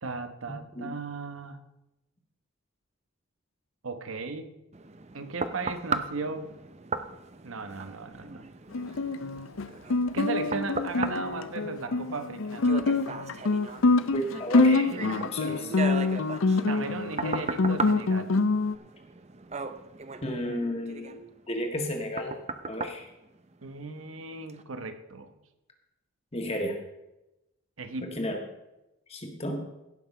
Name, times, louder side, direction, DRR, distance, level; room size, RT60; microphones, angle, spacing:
voice 1, 0.0-1.6 3.8-4.6 5.1-6.5 7.4-8.4 10.1-12.8 14.6-15.1 15.5-15.8 16.6-18.3 23.6-25.3 27.8-28.2, right 3 dB, 80° right, 9 dB, 1.0 m, -36 dB
sound 1, 4.7-24.0 24.5-24.6, right 4 dB, 30° right, 0.6 m, -38 dB
Guitar, 8.7-18.7, left 3 dB, 80° left, 0.6 m, -25 dB
voice 2, 14.1-14.9 15.3-15.7 20.2-22.3 22.6-23.1 26.3-26.8 28.1-28.4 29.1-29.6, equal, 30° left, 3 dB, 1.7 m, -32 dB
16.5 x 6.0 x 5.6 m, 0.95 s
head